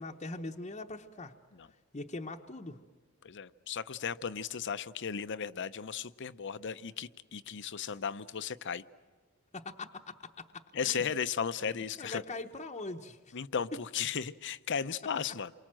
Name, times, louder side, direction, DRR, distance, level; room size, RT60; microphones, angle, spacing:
voice 1, 0.0-1.3 1.9-2.8 7.9-8.0 9.5-11.1 11.6-13.4, left 2 dB, 30° left, 2 dB, 0.9 m, -42 dB
voice 2, 3.2-8.8 10.7-12.2 13.3-15.5, left 7 dB, 60° left, 13 dB, 0.7 m, -35 dB
28.5 x 24.0 x 7.6 m, 1.5 s
head